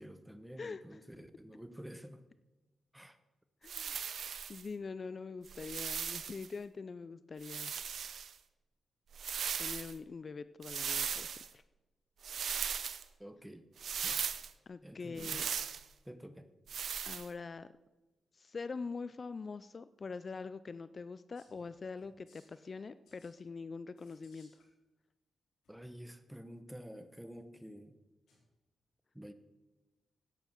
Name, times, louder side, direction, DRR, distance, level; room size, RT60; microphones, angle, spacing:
voice 1, 0.0-2.2 2.9-3.2 13.2-13.6 14.0-14.2 14.8-15.5 16.0-16.5 25.7-28.0 29.1-29.3, equal, 5° right, 10 dB, 0.9 m, -49 dB
voice 2, 3.6-4.0 4.5-7.8 9.6-11.6 14.7-15.5 17.1-17.7 18.3-24.6, left 4 dB, 40° left, 14 dB, 0.3 m, -44 dB
sound 1, 3.7-4.6 5.5-6.5 7.4-8.3 9.1-9.9 10.6-11.5 12.2-13.0 13.8-14.5 15.2-15.8 16.7-17.3, right 7 dB, 70° right, 0.6 m, -38 dB
sound 2, 21.3-21.6 22.0-22.7 23.1-23.3 24.0-24.7 25.6-25.8 28.3-28.4, left 3 dB, 90° left, 3.9 m, -67 dB
11.5 x 9.1 x 4.5 m, 1.1 s
cardioid pair, 85°, 0 cm